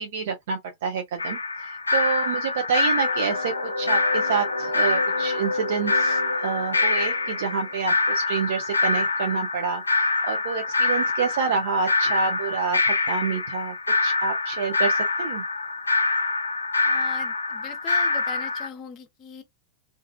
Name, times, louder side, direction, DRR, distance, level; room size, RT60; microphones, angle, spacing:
voice 1, 0.0-13.7 14.0-15.4, right 6 dB, 55° right, 0.5 m, -28 dB
sound 1, 1.2-18.7, left 3 dB, 75° left, 0.3 m, -25 dB
sound 2, 3.0-8.7, left 2 dB, 90° right, 1.0 m, -32 dB
voice 2, 16.8-19.4, left 8 dB, 35° left, 0.6 m, -40 dB
2.6 x 2.4 x 2.2 m
figure-of-eight pair, 90°, 0 cm